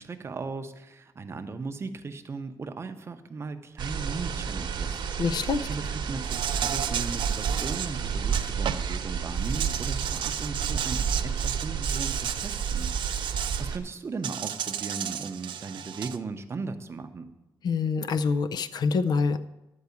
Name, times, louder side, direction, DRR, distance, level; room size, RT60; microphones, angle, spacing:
voice 1, 0.0-5.0 5.6-13.3 13.6-17.3, right 4 dB, 30° right, 8 dB, 0.6 m, -37 dB
sound 1, 3.8-13.8, right 6 dB, 70° right, 1.0 m, -31 dB
voice 2, 5.2-5.7 17.6-19.5, left 5 dB, 60° left, 10 dB, 0.5 m, -26 dB
Insect, 6.2-9.0 9.4-13.6 14.2-16.2, right 9 dB, 90° right, 0.5 m, -33 dB
12.0 x 4.7 x 8.3 m, 0.98 s
wide cardioid pair, 175°, 8 cm